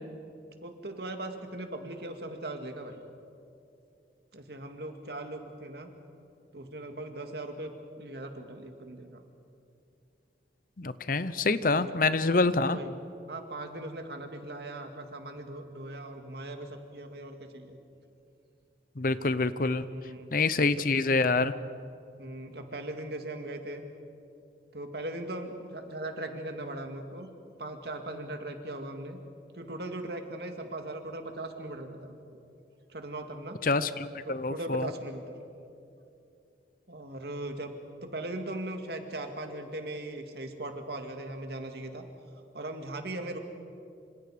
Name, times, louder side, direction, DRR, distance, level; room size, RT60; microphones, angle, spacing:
voice 1, 0.6-3.0 4.3-5.9 6.5-9.2 11.7-12.0 12.3-12.4 12.7-13.0 13.3-17.8 19.9-20.7 21.3-21.7 22.2-23.8 24.7-27.3 27.6-29.2 29.5-32.4 32.9-33.6 34.3-35.4 36.9-37.7 38.0-42.0 42.5-43.4, right 1 dB, 60° right, 5 dB, 2.2 m, -39 dB
voice 2, 10.8-12.8 19.0-19.8 20.3-21.5 33.6-34.9, left 3 dB, 50° left, 14 dB, 0.7 m, -26 dB
27.0 x 26.5 x 5.0 m, 2.6 s
head